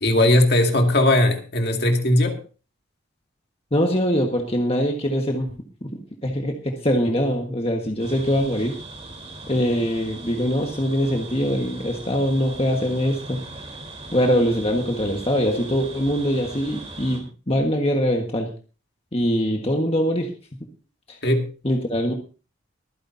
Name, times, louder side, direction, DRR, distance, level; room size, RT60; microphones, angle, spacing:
voice 1, 0.0-2.4 21.2-21.5, left 1 dB, 50° left, 4 dB, 2.2 m, -18 dB
voice 2, 3.7-5.5 5.8-8.7 9.5-13.4 14.1-18.5 19.1-20.3 21.1-21.2 21.6-22.1, equal, 30° left, 2 dB, 1.5 m, -23 dB
sound 1, 8.0-17.2, right 2 dB, 30° right, 3.7 m, -39 dB
23.5 x 10.0 x 2.7 m, 0.35 s
head